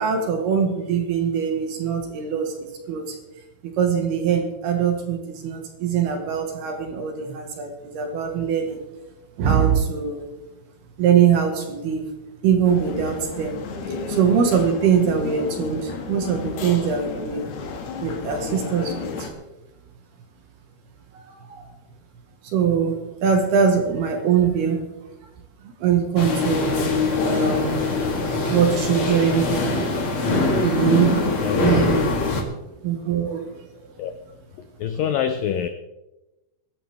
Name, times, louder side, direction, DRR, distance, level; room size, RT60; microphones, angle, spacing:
voice 1, 0.0-2.5 2.9-3.1 3.6-8.8 9.4-10.3 11.0-12.1 12.4-13.6 14.1-17.5 18.0-19.3 21.1-21.7 22.4-24.9 25.8-26.9 27.2-27.8 28.2-29.5 30.6-32.0 32.8-33.4, right 7 dB, 70° right, 4 dB, 3.4 m, -22 dB
sound 1, 12.6-19.3, left 4 dB, 70° left, 3.8 m, -32 dB
sound 2, 26.2-32.4, left 3 dB, 40° left, 2.1 m, -22 dB
voice 2, 31.4-31.9 34.0-34.1 34.8-35.7, left 9 dB, 90° left, 9 dB, 1.9 m, -25 dB
23.0 x 11.5 x 3.5 m, 1.0 s
omnidirectional pair, 5.0 m